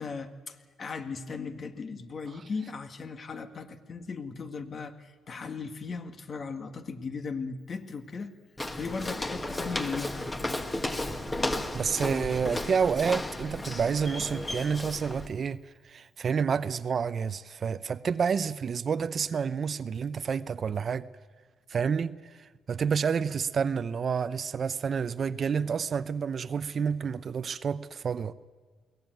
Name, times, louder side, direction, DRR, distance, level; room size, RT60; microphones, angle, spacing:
voice 1, 0.0-8.3 8.7-10.4, left 4 dB, 45° left, 2.0 m, -37 dB
Walk footsteps, 8.6-15.3, left 1 dB, 20° left, 1.9 m, -34 dB
voice 2, 11.7-21.1 21.7-28.3, right 6 dB, 50° right, 0.7 m, -29 dB
22.5 x 17.5 x 9.3 m
cardioid pair, 90°, 0 cm